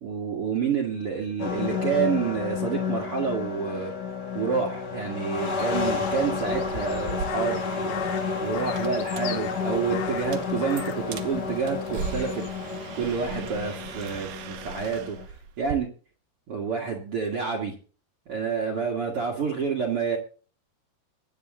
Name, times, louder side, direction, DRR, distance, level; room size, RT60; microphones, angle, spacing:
voice 1, 0.0-3.9 4.3-15.2 15.6-15.9 16.5-17.8 18.3-20.2, right 6 dB, 45° right, 0 dB, 2.1 m, -29 dB
sound 1, 1.4-15.3, left 5 dB, 35° left, 1.9 m, -31 dB
Crow, 5.4-14.3, left 10 dB, 80° left, 3.2 m, -41 dB
sound 2, 7.1-15.8, right 7 dB, 70° right, 2.7 m, -39 dB
23.0 x 8.7 x 3.8 m, 0.39 s
omnidirectional pair, 4.7 m